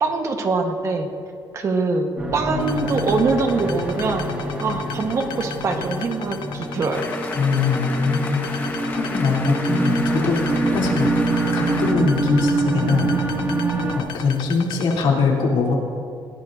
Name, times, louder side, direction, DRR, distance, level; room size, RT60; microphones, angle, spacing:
voice 1, 0.0-1.1 1.5-4.3 4.6-7.1, right 3 dB, 35° right, 4 dB, 1.2 m, -23 dB
sound 1, 2.2-14.0, right 2 dB, 20° right, 1.9 m, -25 dB
sound 2, 2.6-15.0, left 8 dB, 60° left, 0.7 m, -37 dB
sound 3, 6.9-11.9, left 3 dB, 25° left, 1.2 m, -33 dB
voice 2, 7.3-8.4 8.9-11.1 11.5-13.1 13.9-15.7, left 4 dB, 80° left, -2 dB, 2.9 m, -22 dB
20.5 x 18.5 x 2.6 m, 2.4 s
cardioid pair, 180°, 9 cm